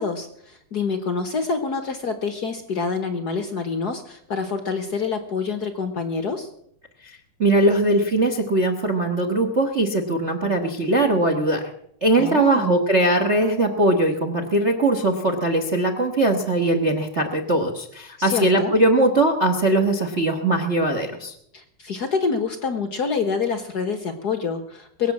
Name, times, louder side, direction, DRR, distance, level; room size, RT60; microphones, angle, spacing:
voice 1, 0.0-6.5 12.1-12.7 18.2-18.7 21.5-25.1, left 5 dB, 85° left, 7 dB, 0.8 m, -27 dB
voice 2, 7.0-11.6 12.0-21.3, right 2 dB, 65° right, 5 dB, 0.6 m, -20 dB
22.5 x 8.7 x 7.3 m, 0.72 s
omnidirectional pair, 3.9 m